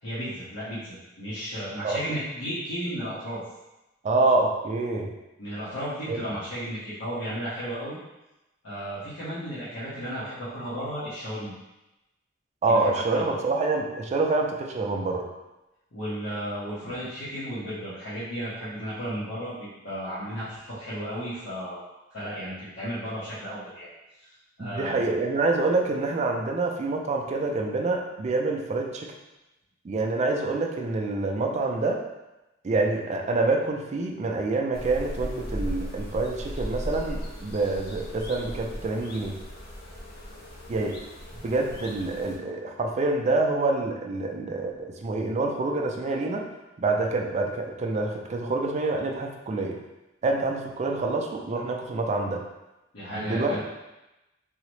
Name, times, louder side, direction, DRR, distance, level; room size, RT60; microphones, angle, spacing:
voice 1, 0.0-3.4 5.4-8.0 8.6-11.5 12.7-13.4 15.9-21.8 22.1-23.9 24.2-24.3 24.6-25.0 52.9-53.6, equal, 70° left, -12 dB, 1.0 m, -34 dB
voice 2, 4.0-5.1 6.1-6.2 12.6-15.3 24.6-29.1 29.8-32.0 32.6-39.4 40.7-41.0 41.4-46.5 46.8-49.8 50.2-52.4 53.1-53.6, right 3 dB, 35° right, 1 dB, 0.3 m, -26 dB
sound 1, 34.7-42.4, equal, 55° left, 0.5 m, -37 dB
3.7 x 2.0 x 3.1 m, 0.98 s
head